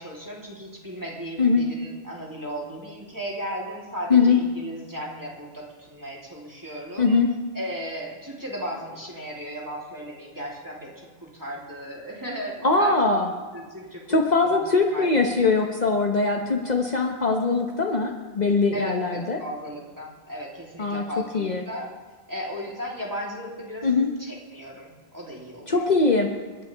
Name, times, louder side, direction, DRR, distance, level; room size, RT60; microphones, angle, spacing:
voice 1, 0.0-7.2 7.5-13.2 13.5-14.6 14.9-15.4 18.7-21.9 22.3-23.9 24.2-25.9, equal, 20° right, -5 dB, 3.3 m, -36 dB
voice 2, 12.6-13.3 14.1-19.4 20.8-21.0 21.3-21.6 23.8-24.1 25.7-26.3, left 4 dB, 45° left, 2 dB, 1.2 m, -21 dB
30.0 x 11.0 x 3.5 m, 1.4 s
omnidirectional pair, 1.0 m